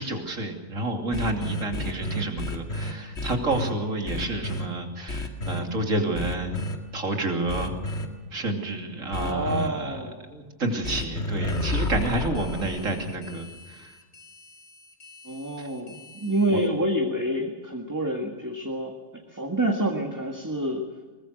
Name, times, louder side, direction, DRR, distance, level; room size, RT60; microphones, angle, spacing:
voice 1, 0.0-6.6 6.9-7.7 8.3-10.0 10.3-13.9 16.5-16.6, right 2 dB, 80° right, 4 dB, 3.2 m, -29 dB
sound 1, 1.1-3.7 4.1-4.7 5.1-5.6 6.1-6.8 7.5-8.1 9.1-9.7 10.8-16.7, left 1 dB, 60° left, 2.3 m, -32 dB
voice 2, 9.2-10.3 15.3-18.9 19.3-20.8, right 1 dB, 15° right, 2 dB, 1.8 m, -28 dB
22.5 x 20.5 x 6.5 m, 1.3 s
omnidirectional pair, 1.3 m